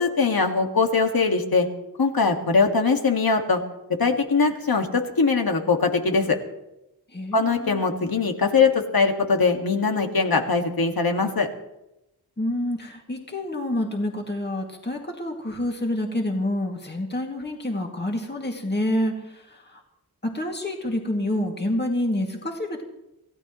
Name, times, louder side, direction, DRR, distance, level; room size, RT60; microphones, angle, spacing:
voice 1, 0.0-1.7 2.0-3.6 4.0-6.4 7.3-11.5, left 4 dB, 65° left, 4 dB, 2.0 m, -21 dB
voice 2, 7.1-7.8 12.4-19.8 20.2-22.8, left 1 dB, 25° left, 1 dB, 2.3 m, -28 dB
28.0 x 16.0 x 3.1 m, 0.92 s
wide cardioid pair, 95°, 39 cm